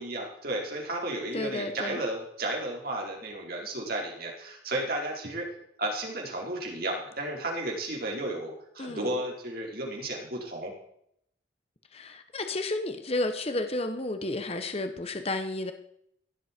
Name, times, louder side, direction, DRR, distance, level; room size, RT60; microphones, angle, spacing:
voice 1, 0.0-5.5 5.8-10.7, right 1 dB, 55° right, -1 dB, 4.5 m, -33 dB
voice 2, 1.3-2.0 8.8-9.2 11.9-15.7, left 2 dB, 35° left, 7 dB, 1.2 m, -32 dB
16.5 x 13.0 x 4.6 m, 0.70 s
head